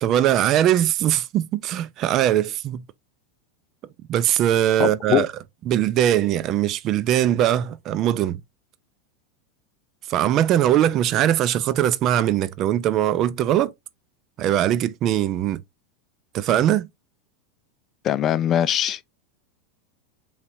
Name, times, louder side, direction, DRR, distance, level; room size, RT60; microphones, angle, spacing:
voice 1, 0.0-2.8 4.1-5.3 5.7-8.4 10.1-13.7 14.4-15.6 16.3-16.9, right 11 dB, 45° right, 0.5 m, -21 dB
voice 2, 4.8-5.3 18.0-19.1, left 11 dB, 35° left, 0.4 m, -22 dB
5.5 x 3.2 x 2.6 m
hypercardioid pair, 95°, 0 cm